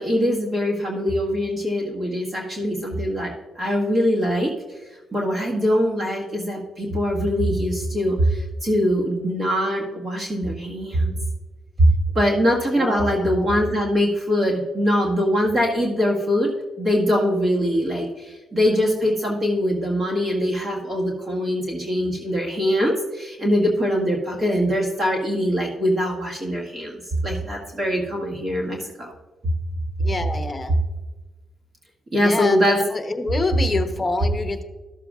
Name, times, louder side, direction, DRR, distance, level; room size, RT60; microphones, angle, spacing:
voice 1, 0.0-4.5 5.1-11.1 11.8-11.9 12.1-16.5 16.8-29.1 32.1-32.8, equal, 35° right, -2 dB, 1.7 m, -22 dB
voice 2, 12.8-13.7 30.0-30.7 32.2-34.6, left 3 dB, 20° left, 6 dB, 1.0 m, -27 dB
13.5 x 6.8 x 2.5 m, 1.2 s
cardioid pair, 90°, 0 cm